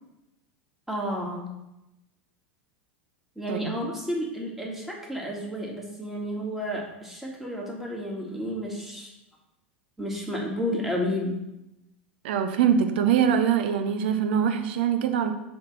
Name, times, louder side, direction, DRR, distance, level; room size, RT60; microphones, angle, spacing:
voice 1, 0.9-1.5 3.4-9.1 10.0-11.4, equal, 5° right, -2 dB, 1.9 m, -31 dB
voice 2, 3.5-3.9 12.2-15.3, right 8 dB, 65° right, 8 dB, 0.7 m, -23 dB
6.5 x 3.7 x 5.9 m, 0.92 s
figure-of-eight pair, 85°, 6 cm